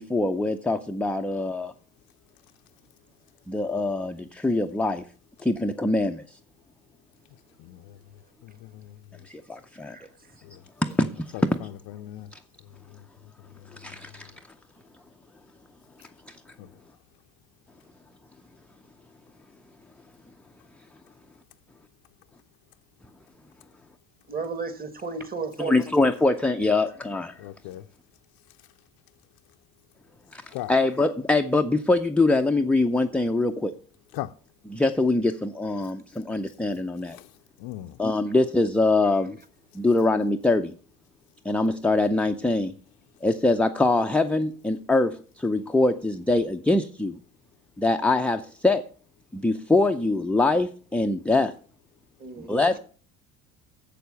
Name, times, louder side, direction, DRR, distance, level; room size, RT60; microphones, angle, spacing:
voice 1, 0.0-1.7 3.5-5.0 5.4-6.2 9.3-10.0 10.8-11.7 12.3-12.4 13.7-14.3 16.3-16.4 25.6-27.3 30.3-30.4 30.7-33.7 34.7-37.2 38.0-39.4 39.7-40.7 41.4-42.7 43.2-47.2 47.8-48.8 49.3-51.5 52.5-52.8, left 2 dB, 5° left, 0.5 m, -23 dB
voice 2, 8.4-8.9 11.3-12.3 16.6-16.7 27.4-27.8 30.5-30.7 34.1-34.3 37.1-37.2 37.6-38.0, left 15 dB, 55° left, 0.6 m, -37 dB
voice 3, 9.9-10.3 24.3-25.8 52.2-52.7, right 4 dB, 20° right, 1.6 m, -34 dB
7.4 x 6.7 x 6.8 m
hypercardioid pair, 70°, 42 cm